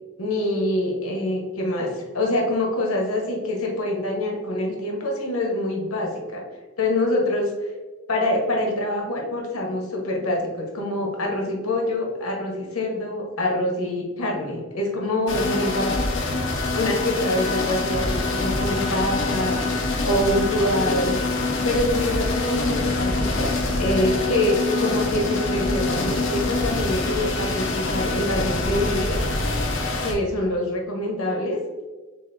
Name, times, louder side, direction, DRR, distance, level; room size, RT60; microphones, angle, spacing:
voice 1, 0.2-6.4 6.8-7.7 8.1-16.0 16.7-19.6 20.0-21.2 21.6-29.2 30.0-31.6, left 1 dB, 90° left, 0 dB, 1.1 m, -25 dB
sound 1, 15.3-30.1, left 2 dB, 60° left, 0.7 m, -25 dB
6.9 x 2.6 x 2.6 m, 1.3 s
head